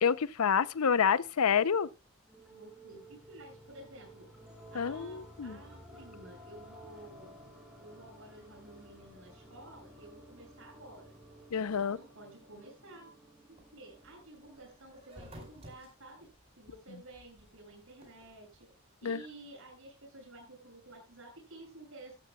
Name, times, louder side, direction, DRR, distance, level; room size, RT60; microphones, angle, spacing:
voice 1, 0.0-1.9 4.7-5.6 11.5-12.0 19.0-19.2, left 7 dB, 80° left, 0.6 m, -28 dB
sound 1, 2.2-15.2, right 1 dB, 5° right, 4.1 m, -54 dB
voice 2, 2.5-4.3 4.7-7.3 7.8-11.2 11.6-13.1 13.5-16.3 16.6-18.7 19.0-22.2, right 2 dB, 65° right, 6.7 m, -52 dB
sound 2, 13.4-18.8, equal, 25° right, 4.7 m, -54 dB
16.5 x 13.0 x 2.3 m
head